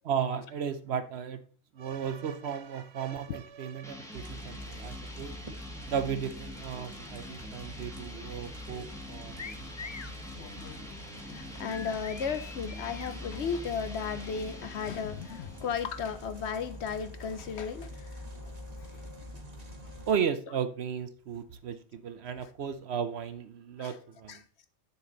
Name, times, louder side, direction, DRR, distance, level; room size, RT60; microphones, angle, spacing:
voice 1, 0.0-1.4 1.7-5.4 5.9-9.4 9.8-9.9 20.1-24.4, right 7 dB, 60° right, 0.9 m, -34 dB
sound 1, 3.8-16.3, left 1 dB, 5° left, 1.2 m, -46 dB
sound 2, 4.1-20.1, left 1 dB, 30° right, 1.4 m, -45 dB
sound 3, 9.4-10.2 11.7-13.1, left 5 dB, 40° left, 0.4 m, -44 dB
voice 2, 9.9-18.5 18.9-19.0 23.8-24.0 24.3-24.4, left 6 dB, 65° left, 0.9 m, -36 dB
7.6 x 6.7 x 3.8 m
omnidirectional pair, 1.3 m